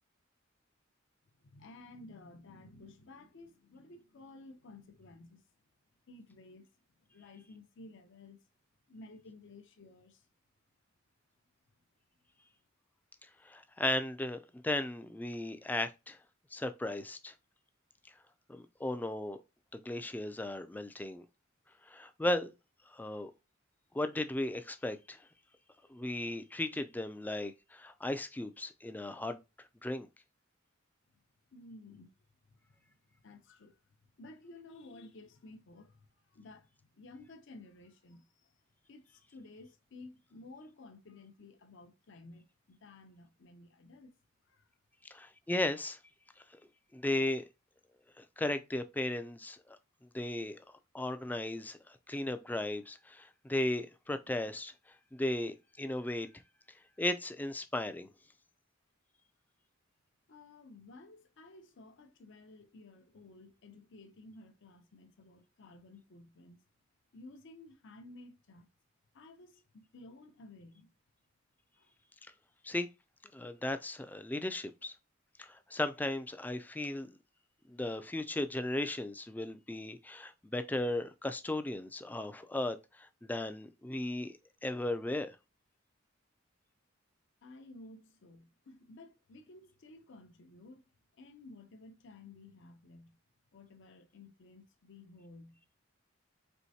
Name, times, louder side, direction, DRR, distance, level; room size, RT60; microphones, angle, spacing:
voice 1, 1.4-5.4 6.1-6.7 7.1-8.4 8.9-10.3 31.5-32.1 32.5-33.0 33.2-38.6 38.9-44.1 44.4-44.7 60.3-66.6 67.1-68.7 69.1-70.9 71.8-71.9 87.4-90.8 91.2-93.2 93.5-95.6, left 2 dB, 65° left, 0.6 m, -54 dB
voice 2, 13.4-16.2 16.5-17.3 18.5-19.4 19.7-21.2 21.9-22.5 22.9-23.3 23.9-25.2 25.9-29.4 29.8-30.1 45.1-46.0 46.9-47.4 48.2-49.8 50.0-50.6 50.9-54.7 55.1-56.3 57.0-58.1 72.6-72.9 73.3-74.9 75.4-77.1 77.7-85.4, left 1 dB, 10° left, 0.3 m, -36 dB
4.4 x 3.1 x 2.7 m
head